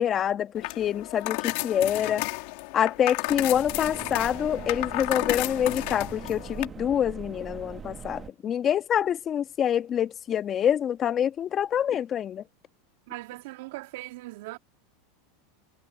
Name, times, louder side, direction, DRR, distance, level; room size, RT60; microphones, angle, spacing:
voice 1, 0.0-2.3 2.7-12.4, left 9 dB, 35° left, 1.6 m, -26 dB
sound 1, 0.5-6.7, left 26 dB, 65° left, 3.0 m, -32 dB
sound 2, 3.3-8.3, right 6 dB, 25° right, 2.2 m, -41 dB
voice 2, 13.1-14.6, right 20 dB, 70° right, 2.8 m, -39 dB
hypercardioid pair, 110°, 0 cm